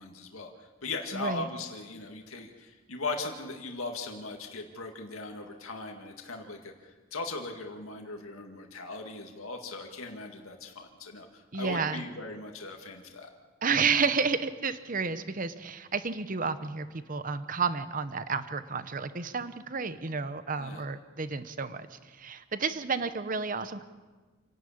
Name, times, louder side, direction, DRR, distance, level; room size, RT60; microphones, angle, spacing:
voice 1, 0.0-13.3 20.6-20.8, left 3 dB, 85° left, 3 dB, 2.0 m, -39 dB
voice 2, 1.1-1.5 11.5-12.0 13.6-23.8, right 5 dB, 40° right, 12 dB, 0.9 m, -31 dB
28.0 x 11.5 x 8.6 m, 1.4 s
head